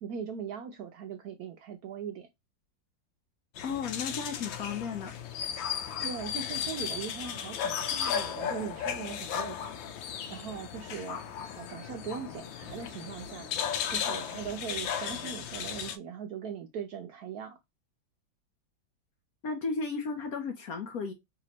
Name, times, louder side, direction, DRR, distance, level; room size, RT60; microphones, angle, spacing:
voice 1, 0.0-2.3 6.0-9.7 10.3-11.2 11.6-13.5 13.9-17.6, right 7 dB, 70° right, 0.9 m, -40 dB
sound 1, 3.6-16.0, left 8 dB, 85° left, 1.3 m, -35 dB
voice 2, 3.6-5.1 19.4-21.1, left 5 dB, 65° left, 1.0 m, -34 dB
3.3 x 2.9 x 3.9 m
omnidirectional pair, 2.1 m